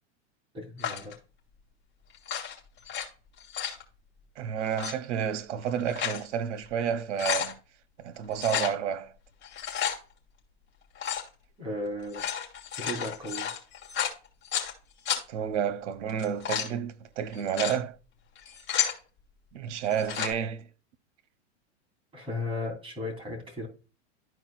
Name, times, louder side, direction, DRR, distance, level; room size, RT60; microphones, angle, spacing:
voice 1, 0.5-1.2 11.6-12.3 12.8-13.5 22.1-23.7, left 2 dB, 15° right, 3.1 m, -35 dB
sound 1, 0.8-1.1 2.1-3.0 3.4-3.8 4.6-4.9 5.6-6.2 6.7-6.8 7.0-7.5 8.4-8.7 9.4-10.0 11.0-11.3 12.0-14.7 15.1-15.2 16.1-16.7 17.3-17.8 18.4-19.0 19.9-20.3, left 8 dB, 30° left, 2.6 m, -31 dB
voice 2, 4.4-7.6 8.0-9.1 15.3-18.0 19.5-20.7, right 8 dB, 90° right, 0.8 m, -30 dB
13.0 x 4.7 x 2.3 m
supercardioid pair, 135°, 35 cm